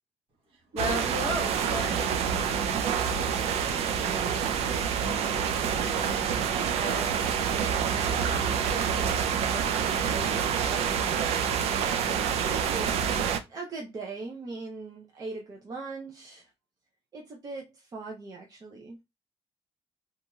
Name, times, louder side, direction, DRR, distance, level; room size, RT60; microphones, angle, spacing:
voice 1, 0.7-2.3 5.8-6.3 6.7-7.2 7.9-11.2, equal, 60° right, 1.2 m, -37 dB
sound 1, 0.8-13.4, right 7 dB, 80° right, 0.4 m, -27 dB
voice 2, 2.9-4.3 13.5-16.5 17.1-19.0, right 3 dB, 35° right, 0.6 m, -41 dB
2.9 x 2.6 x 2.3 m
cardioid pair, 135°, 11 cm